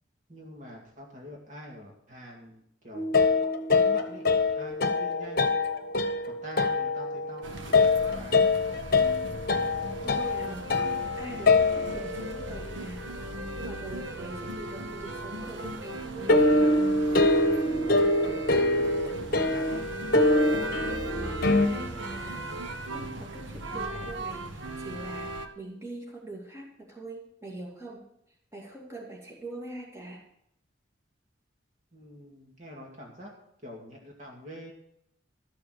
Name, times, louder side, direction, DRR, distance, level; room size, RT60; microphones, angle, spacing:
voice 1, 0.3-3.1 3.7-4.2 4.6-5.6 6.3-8.5 18.5-20.1 31.9-33.3 33.6-34.7, equal, 40° right, -1 dB, 2.3 m, -46 dB
sound 1, 2.9-12.5 16.3-21.7, left 3 dB, 50° left, 1.0 m, -24 dB
sound 2, 7.4-25.5, right 1 dB, 80° right, 1.1 m, -37 dB
voice 2, 10.0-10.7 11.2-13.0 13.6-16.3 21.4-22.4 22.9-28.0 28.5-30.2, right 2 dB, 15° right, -2 dB, 2.5 m, -43 dB
12.5 x 6.8 x 6.6 m, 0.72 s
head